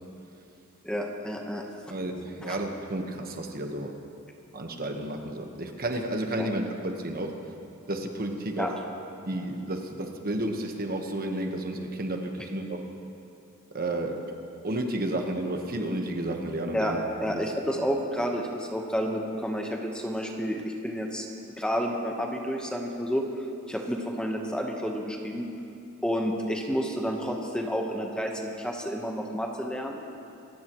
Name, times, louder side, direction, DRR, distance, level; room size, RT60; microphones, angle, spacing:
voice 1, 0.8-1.6 2.4-2.6 6.4-6.5 8.6-8.7 16.7-16.9 17.2-21.3 21.6-23.2 23.7-25.5 26.0-30.0, equal, 5° left, 1 dB, 1.2 m, -30 dB
voice 2, 1.9-4.0 4.5-7.4 7.9-8.7 9.3-12.8 13.7-14.3 14.6-17.0 17.2-17.4 17.8-17.9, right 1 dB, 45° right, 3 dB, 1.3 m, -32 dB
27.0 x 15.5 x 3.1 m, 2.8 s
head